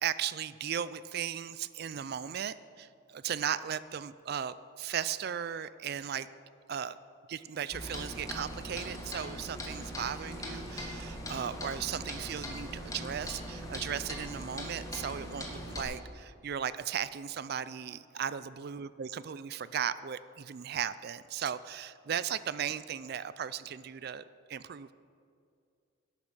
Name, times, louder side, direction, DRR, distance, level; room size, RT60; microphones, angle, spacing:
voice 1, 0.0-6.3 6.7-7.0 7.3-24.9, right 8 dB, 55° right, 16 dB, 0.4 m, -36 dB
Clock, 7.7-15.8, equal, 15° left, 1.6 m, -40 dB
12.0 x 8.6 x 6.2 m, 2.4 s
head